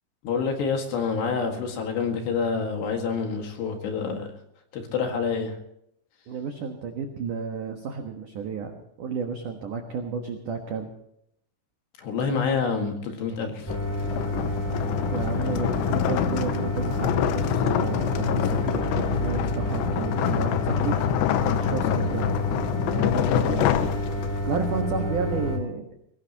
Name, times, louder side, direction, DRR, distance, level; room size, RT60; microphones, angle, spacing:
voice 1, 0.2-4.3 4.7-5.6 12.0-13.8, left 5 dB, 60° left, 3 dB, 3.7 m, -27 dB
voice 2, 6.3-8.7 9.0-10.9 15.1-21.3 21.6-22.3 22.7-23.8 24.4-25.9, right 5 dB, 75° right, 3 dB, 1.9 m, -32 dB
sound 1, 13.6-24.6, left 12 dB, 80° left, 2.6 m, -27 dB
sound 2, 13.7-25.6, left 1 dB, 10° left, 1.3 m, -29 dB
22.0 x 19.0 x 3.0 m, 0.75 s
omnidirectional pair, 5.9 m